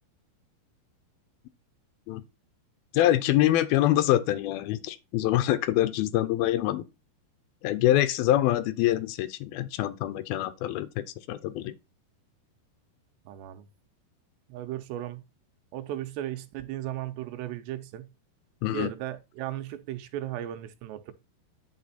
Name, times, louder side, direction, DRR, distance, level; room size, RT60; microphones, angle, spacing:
voice 1, 2.9-6.9 7.6-11.7 18.6-18.9, left 14 dB, 75° left, 2.4 m, -25 dB
voice 2, 13.3-13.7 14.5-15.2 15.7-18.1 18.7-21.1, right 13 dB, 85° right, 3.0 m, -36 dB
11.0 x 4.4 x 4.1 m
omnidirectional pair, 4.8 m